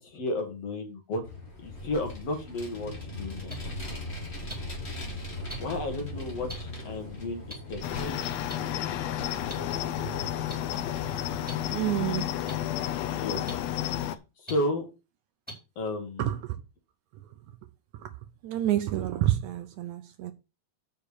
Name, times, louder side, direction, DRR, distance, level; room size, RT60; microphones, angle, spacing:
voice 1, 0.0-1.2 1.6-3.5 5.6-8.2 13.1-13.5 14.0-14.9 15.8-16.3, left 1 dB, 50° left, 2.7 m, -33 dB
Vehicle, 1.2-12.1, left 2 dB, 20° left, 2.3 m, -40 dB
sound 1, 3.5-3.6 4.5-4.6 5.5-5.6 6.5-6.6 7.5-7.6 8.5-8.6 9.5-9.6 10.5-10.6 11.5-11.6 12.5-12.6 13.5-13.6 14.5-14.6 15.5-15.6 16.4-16.5, right 1 dB, ahead, 4.3 m, -38 dB
Cricket, 7.8-14.2, left 12 dB, 80° left, 1.5 m, -31 dB
voice 2, 11.7-12.4 16.2-16.6 17.9-18.1 18.4-20.3, right 13 dB, 75° right, 1.9 m, -28 dB
6.7 x 5.9 x 7.0 m
omnidirectional pair, 3.8 m